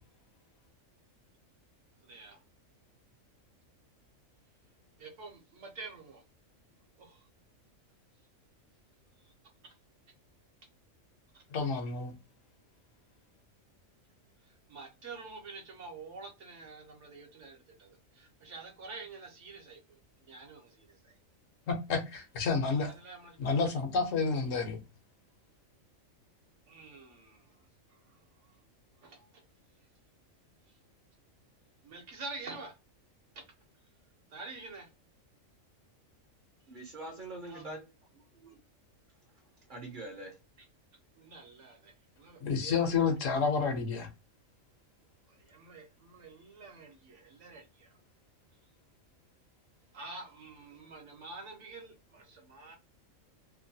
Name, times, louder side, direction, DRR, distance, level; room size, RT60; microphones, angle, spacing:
voice 1, 2.0-2.4 5.0-6.2 7.0-7.3 9.2-9.3 11.3-11.4 14.4-21.2 22.7-23.6 26.7-28.6 29.0-29.4 30.7-30.8 31.8-32.8 33.3-33.4 34.3-34.9 37.4-37.6 40.6-40.7 41.2-43.2 45.3-48.0 49.9-52.8, right 3 dB, 65° right, 1.1 m, -48 dB
voice 2, 11.5-12.1 21.7-22.9 23.4-24.8 42.4-44.1, left 5 dB, 70° left, 1.1 m, -30 dB
voice 3, 36.7-37.9 38.1-38.6 39.7-40.4, right 2 dB, 45° right, 0.7 m, -44 dB
3.0 x 2.2 x 2.6 m
omnidirectional pair, 1.4 m